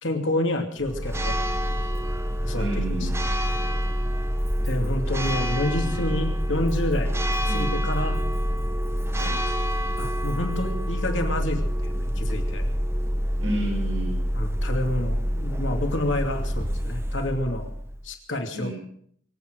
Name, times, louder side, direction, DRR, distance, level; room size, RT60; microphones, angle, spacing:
voice 1, 0.0-1.4 2.4-2.7 3.0-3.1 4.6-7.1 7.5-8.2 10.0-12.6 14.3-17.7 18.0-18.7, left 1 dB, 65° left, 4 dB, 2.7 m, -28 dB
Church bell, 0.8-18.1, equal, 15° right, 1.1 m, -26 dB
voice 2, 2.5-3.1 5.7-6.0 7.4-7.8 9.1-9.4 13.4-14.2 18.5-18.8, right 1 dB, 90° right, -1 dB, 7.0 m, -32 dB
24.0 x 8.8 x 6.5 m, 0.64 s
head